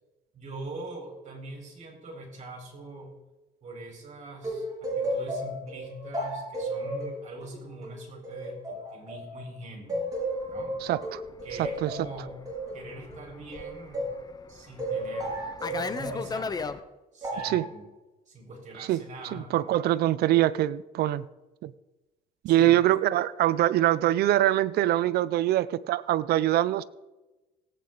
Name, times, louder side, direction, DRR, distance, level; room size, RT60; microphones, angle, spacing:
voice 1, 0.3-3.2 3.6-10.1 10.5-10.8 11.4-12.4 12.7-14.1 14.5-16.5 17.1-17.9 18.3-19.8 22.4-22.7, right 2 dB, 45° right, 1 dB, 4.5 m, -43 dB
sound 1, 4.4-9.5 9.9-14.2 14.8-16.2 17.2-17.7, right 1 dB, 20° right, 4.3 m, -33 dB
Fixed-wing aircraft airplane, 10.3-16.8, left 4 dB, 25° left, 0.7 m, -38 dB
voice 2, 10.8-11.2 11.6-11.9 17.4-17.7 18.9-19.0 19.3-21.2 21.6-21.7 22.4-26.8, right 14 dB, 70° right, 17 dB, 0.6 m, -24 dB
17.5 x 8.5 x 3.9 m, 1.1 s
cardioid pair, 110°, 17 cm